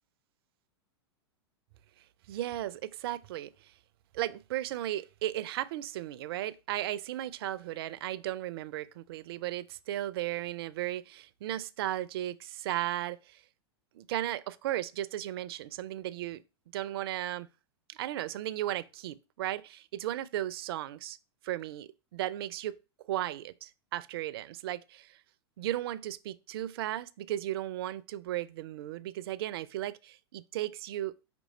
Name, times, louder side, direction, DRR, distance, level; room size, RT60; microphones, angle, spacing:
voice 1, 2.3-3.7 4.1-13.4 13.9-16.4 16.7-17.5 17.9-21.2 21.4-22.7 23.0-25.2 25.6-31.2, right 13 dB, 60° right, 0.4 m, -35 dB
5.1 x 3.1 x 3.0 m
hypercardioid pair, 100°, 14 cm